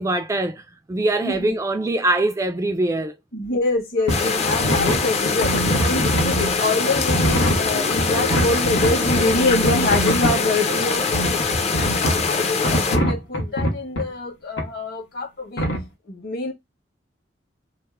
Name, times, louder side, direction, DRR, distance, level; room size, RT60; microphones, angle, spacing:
voice 1, 0.0-3.2, right 2 dB, 15° right, 0.3 m, -23 dB
voice 2, 1.2-1.5 3.3-11.4 11.7-15.7 16.1-16.5, left 2 dB, 55° left, 1.6 m, -25 dB
sound 1, 4.0-11.3, right 2 dB, 75° right, 0.7 m, -36 dB
sound 2, 4.1-4.2 4.5-6.5 6.9-10.4 11.1-12.3 12.6-14.1 14.6-14.7 15.6-15.8, equal, 80° left, 1.3 m, -23 dB
sound 3, 4.1-13.0, left 4 dB, 35° left, 0.5 m, -23 dB
3.2 x 2.1 x 3.4 m
head